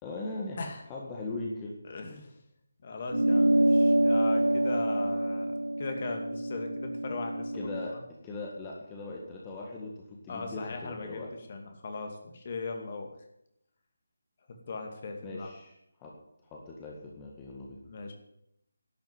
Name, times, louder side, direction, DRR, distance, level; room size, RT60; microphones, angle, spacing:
voice 1, 0.0-0.6 0.9-1.7 7.5-8.0 8.2-11.3 15.2-15.7 16.0-16.1 16.5-17.8, left 2 dB, 15° left, -2 dB, 1.8 m, -39 dB
voice 2, 1.8-2.3 2.8-8.0 10.3-13.1 14.7-15.5 17.8-18.1, left 3 dB, 35° left, 4 dB, 2.3 m, -39 dB
sound 1, 3.1-7.9, right 1 dB, 80° right, 0.6 m, -26 dB
12.0 x 8.2 x 9.3 m, 0.78 s
figure-of-eight pair, 155°, 0 cm